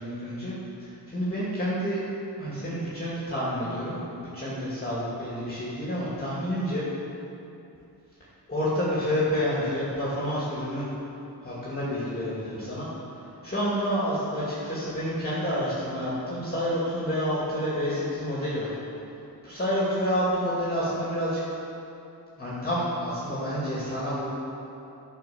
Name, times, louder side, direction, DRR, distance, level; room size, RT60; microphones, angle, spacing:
voice 1, 0.0-2.0 2.4-6.9 8.5-10.8 11.4-12.9 13.1-18.7 19.4-21.4 22.4-24.3, equal, 25° left, -9 dB, 2.3 m, -29 dB
11.0 x 5.7 x 7.1 m, 2.8 s
wide cardioid pair, 140°, 40 cm